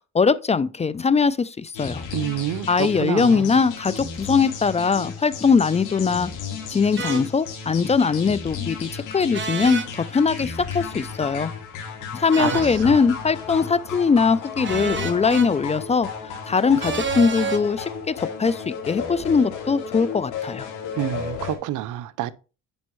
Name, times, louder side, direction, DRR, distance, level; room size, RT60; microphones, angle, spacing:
voice 1, 0.1-2.0 2.7-6.3 6.7-11.5 12.1-16.1 16.5-20.7, left 5 dB, 20° left, 0.4 m, -21 dB
sound 1, 1.7-21.6, left 6 dB, 85° left, 2.3 m, -34 dB
voice 2, 2.1-3.5 12.4-13.0 20.9-22.3, right 13 dB, 85° right, 0.6 m, -28 dB
sound 2, 7.0-7.2 9.3-9.9 12.3-12.7 14.6-15.5 16.8-17.6, right 5 dB, 40° right, 1.3 m, -29 dB
9.5 x 5.3 x 3.1 m
cardioid pair, 90°, 30 cm